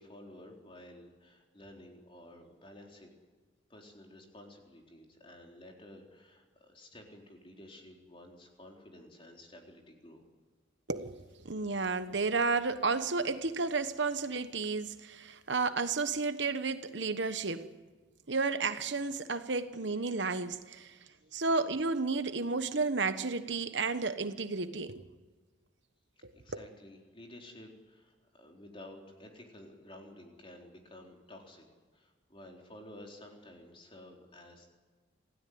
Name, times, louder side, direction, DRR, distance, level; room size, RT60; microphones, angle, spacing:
voice 1, 0.0-3.1 3.7-10.2 20.7-21.4 26.2-31.7 31.9-34.7, left 1 dB, 30° left, 4.0 m, -52 dB
voice 2, 10.9-17.7 18.3-21.0 21.3-25.1 26.2-26.3, right 4 dB, 65° right, 1.2 m, -32 dB
27.5 x 16.5 x 9.5 m
head